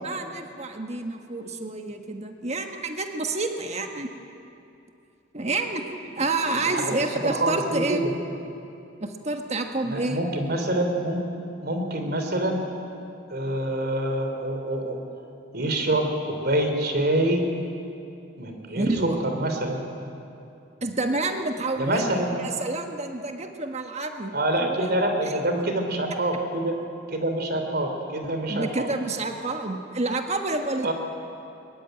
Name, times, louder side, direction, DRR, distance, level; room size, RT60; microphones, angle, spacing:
voice 1, 0.0-4.1 5.3-8.1 9.0-10.2 18.7-19.2 20.8-22.0 22.3-24.8 25.2-25.6 28.5-30.9, right 2 dB, 35° right, 5 dB, 1.5 m, -29 dB
voice 2, 6.5-6.9 7.2-8.1 9.8-11.2 11.6-12.6 13.3-15.0 15.5-17.5 18.4-19.8 21.8-22.3 24.3-26.8 27.1-28.9 30.8-30.9, right 1 dB, 55° right, 4 dB, 3.1 m, -26 dB
22.0 x 21.0 x 9.1 m, 2.6 s
head